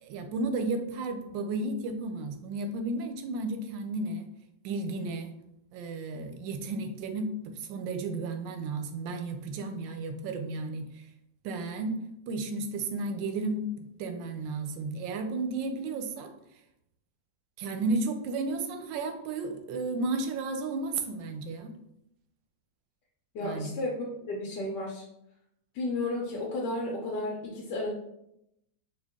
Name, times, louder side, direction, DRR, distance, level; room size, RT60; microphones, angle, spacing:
voice 1, 0.0-4.3 4.6-5.3 5.7-11.0 11.4-12.0 12.3-16.3 17.6-21.7 23.4-23.7, right 3 dB, 90° right, 6 dB, 1.3 m, -33 dB
voice 2, 23.3-25.0 25.7-27.9, left 2 dB, 75° left, -3 dB, 1.3 m, -33 dB
4.6 x 2.3 x 3.5 m, 0.81 s
omnidirectional pair, 1.9 m